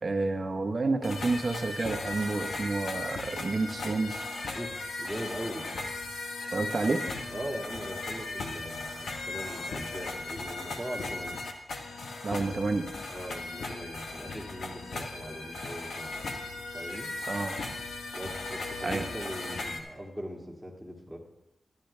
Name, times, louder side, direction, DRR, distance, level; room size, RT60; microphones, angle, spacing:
voice 1, 0.0-4.3 6.5-7.1 12.2-12.9 17.3-17.6 18.8-19.0, right 3 dB, 45° right, 4 dB, 1.0 m, -29 dB
sound 1, 1.0-19.8, left 3 dB, 90° left, 1.0 m, -37 dB
voice 2, 5.0-5.6 7.3-11.4 13.1-16.3 16.7-17.1 18.1-21.2, equal, 5° left, -1 dB, 2.0 m, -40 dB
12.0 x 11.0 x 3.3 m, 0.91 s
wide cardioid pair, 100°, 0 cm